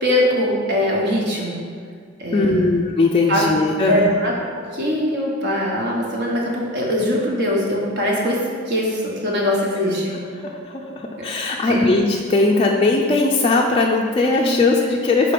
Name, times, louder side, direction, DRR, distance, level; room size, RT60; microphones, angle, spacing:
voice 1, 0.0-1.6 2.2-2.7 3.3-3.4 3.9-8.4 8.7-10.2 11.2-11.3 11.7-11.8 14.4-14.8, left 1 dB, 55° right, -3 dB, 1.3 m, -22 dB
voice 2, 2.3-4.1 10.4-15.3, left 3 dB, 25° left, -1 dB, 0.4 m, -19 dB
5.8 x 3.8 x 4.9 m, 2.1 s
head